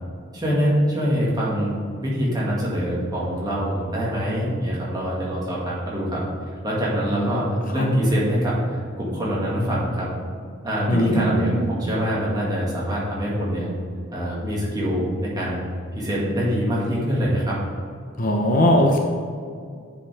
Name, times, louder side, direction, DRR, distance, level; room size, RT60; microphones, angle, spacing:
voice 1, 0.3-1.7 2.0-6.2 6.6-7.5 7.7-10.1 10.6-13.7 14.1-15.6 15.9-17.6, equal, 20° right, -6 dB, 1.8 m, -24 dB
voice 2, 10.9-11.6 18.2-19.0, equal, 40° left, 1 dB, 0.7 m, -20 dB
9.7 x 5.2 x 3.4 m, 2.2 s
head